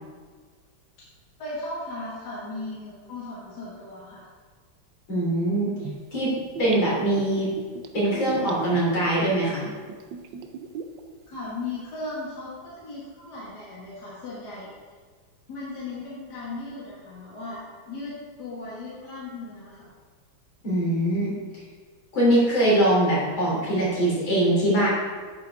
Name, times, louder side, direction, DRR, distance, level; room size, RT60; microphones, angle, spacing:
voice 1, 1.4-4.3 11.3-14.7 15.5-19.9, left 2 dB, 55° left, -7 dB, 2.3 m, -37 dB
voice 2, 5.1-5.7 6.1-6.3 6.6-7.5 7.9-9.6 20.6-21.6 22.1-24.9, right 1 dB, 75° left, -6 dB, 4.1 m, -22 dB
Gurgling / Bathtub (filling or washing), 5.8-11.0 11.3-11.4, right 6 dB, 75° right, 1.4 m, -37 dB
10.5 x 8.1 x 3.6 m, 1.5 s
omnidirectional pair, 2.1 m